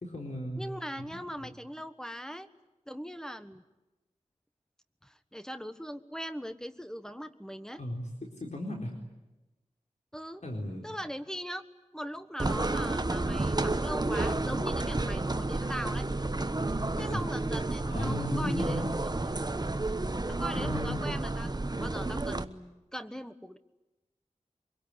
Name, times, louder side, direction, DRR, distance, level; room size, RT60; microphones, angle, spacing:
voice 1, 0.0-0.6 1.0-1.5 7.8-8.1 8.4-8.9 10.4-10.9 17.0-17.2 17.8-18.9 20.5-21.0, left 1 dB, 65° left, 1 dB, 4.2 m, -36 dB
voice 2, 0.6-2.5 2.9-3.6 5.0-7.8 10.1-10.4 10.8-11.6 11.9-16.1 17.0-18.8 20.3-21.5 21.8-23.6, equal, 5° left, 11 dB, 1.3 m, -40 dB
sound 1, 12.4-22.4, right 2 dB, 30° right, 1.1 m, -31 dB
24.0 x 22.5 x 9.9 m, 1.1 s
wide cardioid pair, 65°, 13 cm